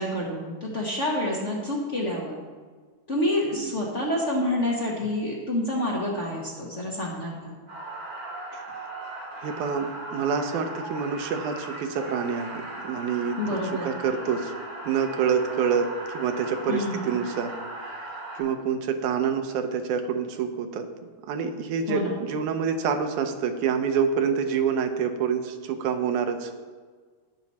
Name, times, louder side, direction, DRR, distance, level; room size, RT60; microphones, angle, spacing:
voice 1, 0.0-2.4 3.1-7.6 13.4-13.9 16.7-17.1 21.9-22.2, left 1 dB, 45° left, -4 dB, 1.0 m, -28 dB
sound 1, 7.7-18.4, right 2 dB, 65° right, 4.8 m, -38 dB
voice 2, 9.4-13.4 13.8-14.5 14.9-17.5 18.4-20.9 21.3-26.5, right 6 dB, 85° right, 6 dB, 2.4 m, -27 dB
17.5 x 6.0 x 4.2 m, 1.5 s
omnidirectional pair, 3.4 m